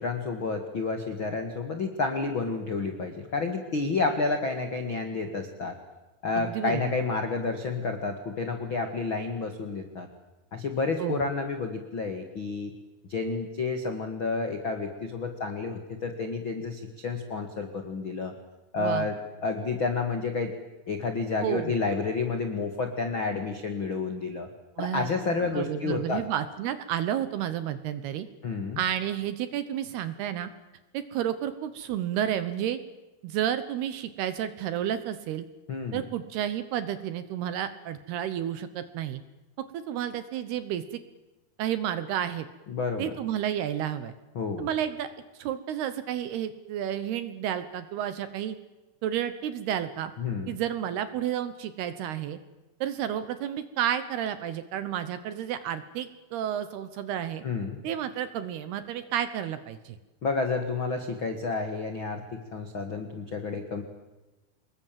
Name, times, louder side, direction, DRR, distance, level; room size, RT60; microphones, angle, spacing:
voice 1, 0.0-5.7 6.2-10.1 10.5-12.7 13.1-18.3 18.7-20.5 20.9-24.5 24.8-26.2 28.4-28.8 35.7-36.0 42.7-43.1 44.3-44.7 50.2-50.5 57.4-57.8 60.2-63.8, left 4 dB, 65° left, 6 dB, 1.2 m, -30 dB
voice 2, 6.4-6.9 11.0-11.2 18.8-19.1 21.4-21.7 24.8-28.3 28.8-30.5 30.9-32.8 33.2-35.5 35.9-39.2 39.6-40.8 41.6-42.5 43.0-44.1 44.6-45.1 45.4-48.6 49.0-50.1 50.5-52.4 52.8-57.4 57.8-60.0, right 10 dB, 70° right, 12 dB, 2.6 m, -31 dB
26.5 x 21.5 x 7.6 m, 1.1 s
omnidirectional pair, 5.5 m